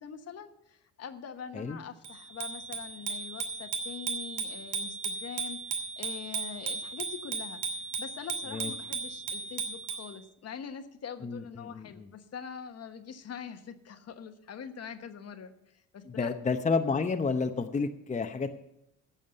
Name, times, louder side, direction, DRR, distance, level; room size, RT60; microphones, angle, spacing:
voice 1, 0.0-16.3, left 7 dB, 55° left, 8 dB, 1.2 m, -44 dB
Bicycle bell, 2.0-10.1, right 4 dB, 85° right, 1.6 m, -36 dB
voice 2, 11.2-12.1 16.1-18.6, left 4 dB, 25° left, 6 dB, 0.8 m, -30 dB
11.0 x 7.3 x 8.1 m, 0.79 s
cardioid pair, 90°, 30 cm